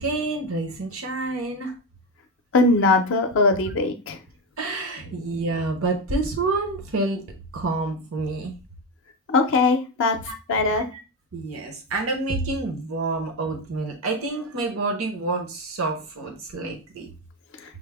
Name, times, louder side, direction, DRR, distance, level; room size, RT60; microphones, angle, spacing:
voice 1, 0.0-1.7 4.6-7.2 7.5-8.5 10.3-10.4 10.7-10.8 11.3-17.1, right 3 dB, 80° right, 4 dB, 0.8 m, -28 dB
voice 2, 2.5-4.2 9.3-10.2 10.5-10.8, left 3 dB, 60° left, 6 dB, 0.4 m, -20 dB
6.0 x 2.0 x 3.3 m, 0.32 s
head